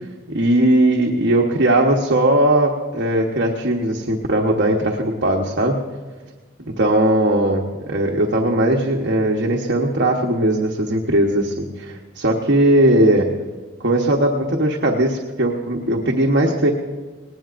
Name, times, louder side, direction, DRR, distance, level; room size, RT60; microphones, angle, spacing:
voice 1, 0.3-5.8 6.8-13.3 13.8-16.7, right 1 dB, 60° right, -1 dB, 1.1 m, -18 dB
19.5 x 18.5 x 2.6 m, 1.3 s
head